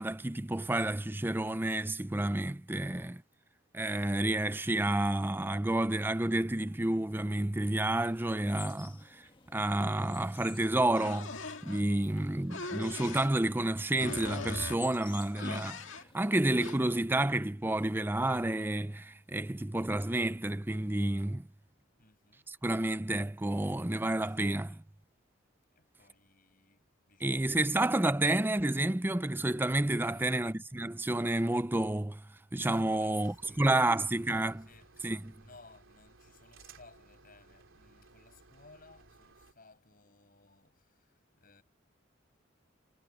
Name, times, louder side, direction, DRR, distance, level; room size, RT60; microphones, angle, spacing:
voice 1, 0.0-3.2 3.7-9.2 9.5-11.4 11.6-15.9 16.1-21.5 22.5-24.8 27.2-32.2 32.5-34.7 35.0-35.3, right 1 dB, 10° right, 0.5 m, -30 dB
sound 1, 7.8-16.3, left 5 dB, 25° left, 1.8 m, -54 dB
sound 2, 10.9-11.8 12.5-13.3 14.0-14.8 15.3-16.1 16.6-16.8, left 3 dB, 75° left, 2.2 m, -40 dB
voice 2, 22.0-22.4 24.2-24.8 25.8-27.8 30.1-30.4 32.9-34.2 34.6-40.8 41.4-41.6, left 3 dB, 45° left, 6.1 m, -60 dB
sound 3, 33.2-39.5, right 4 dB, 85° right, 3.2 m, -59 dB
head